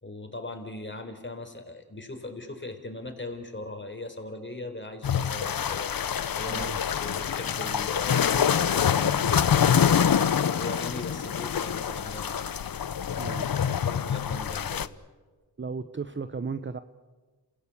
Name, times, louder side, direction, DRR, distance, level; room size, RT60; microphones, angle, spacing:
voice 1, 0.0-6.1 6.3-12.5 13.5-14.9, left 2 dB, 30° left, 6 dB, 4.0 m, -39 dB
sound 1, 5.0-14.9, left 8 dB, 60° left, 0.8 m, -26 dB
voice 2, 6.5-6.8 13.2-13.5 15.6-16.8, right 4 dB, 30° right, 11 dB, 0.9 m, -35 dB
28.5 x 16.0 x 8.6 m, 1.3 s
cardioid pair, 50°, 40 cm